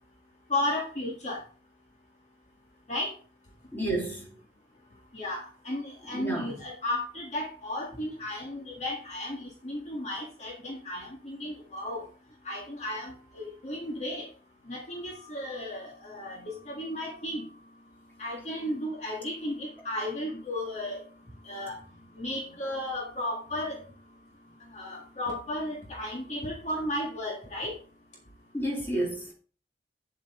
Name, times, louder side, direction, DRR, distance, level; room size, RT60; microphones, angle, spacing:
voice 1, 0.5-1.4 2.9-3.1 5.1-12.0 12.4-14.3 14.7-17.4 18.2-21.0 21.4-21.8 22.2-23.8 24.7-27.7, left 1 dB, 40° left, 1.8 m, -34 dB
voice 2, 3.7-4.2 6.1-6.5 28.5-29.3, right 1 dB, 10° left, 2.8 m, -30 dB
8.8 x 7.6 x 3.7 m
head